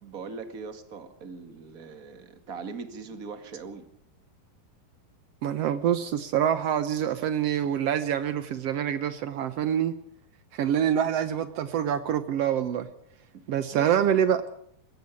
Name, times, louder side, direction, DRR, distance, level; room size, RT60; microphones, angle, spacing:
voice 1, 0.0-3.9 13.3-13.4 13.7-14.0, right 5 dB, 35° right, 1.6 m, -40 dB
voice 2, 5.4-9.9 10.5-12.9 13.5-14.4, right 9 dB, 90° right, 1.3 m, -26 dB
21.5 x 16.5 x 8.3 m
omnidirectional pair, 4.3 m